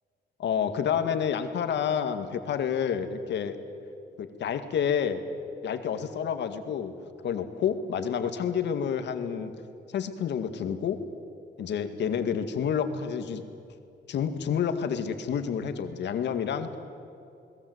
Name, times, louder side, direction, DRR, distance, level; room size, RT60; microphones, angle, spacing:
voice 1, 0.4-3.6 4.2-5.2 5.6-6.9 7.2-9.5 9.9-11.0 11.6-13.4 14.1-16.8, left 7 dB, 75° left, 8 dB, 2.1 m, -29 dB
29.0 x 21.0 x 8.1 m, 2.6 s
wide cardioid pair, 165°, 18 cm